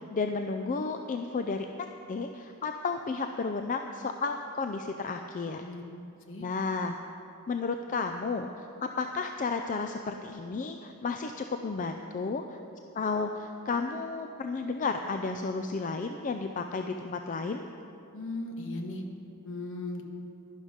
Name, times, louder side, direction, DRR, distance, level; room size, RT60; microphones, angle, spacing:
voice 1, 0.1-1.7 2.1-5.7 6.4-6.9 7.5-12.6 12.9-17.6, left 4 dB, 35° left, 6 dB, 0.4 m, -32 dB
voice 2, 18.1-19.0 19.4-20.0, left 2 dB, 60° left, 3 dB, 1.3 m, -37 dB
11.5 x 11.0 x 5.1 m, 2.7 s
head